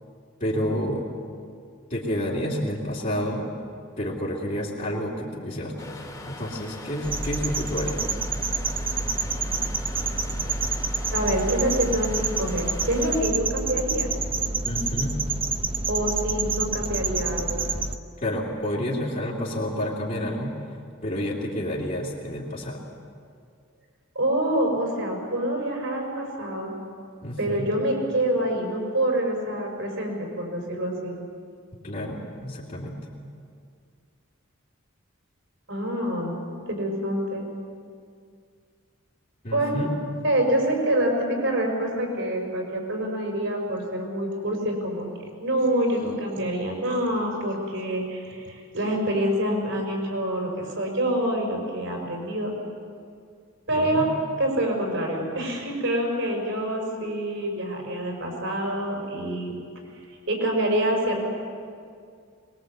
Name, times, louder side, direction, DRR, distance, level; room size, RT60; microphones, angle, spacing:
voice 1, 0.4-1.0 1.9-3.5 4.0-8.2 14.6-15.2 18.2-20.6 21.0-22.8 27.2-27.7 31.8-33.1 39.4-39.9 53.7-54.0, equal, 40° left, -5 dB, 2.8 m, -29 dB
sound 1, 5.8-13.2, left 2 dB, 20° left, 2.3 m, -41 dB
sound 2, 7.0-18.0, right 4 dB, 25° right, 0.9 m, -28 dB
voice 2, 11.1-14.1 15.9-17.7 24.2-26.7 27.4-31.2 35.7-37.5 39.5-39.8 40.2-45.1 45.4-52.5 53.7-54.0 54.4-59.6 60.3-61.3, right 1 dB, 65° right, 2 dB, 5.5 m, -26 dB
22.5 x 21.5 x 8.0 m, 2.2 s
head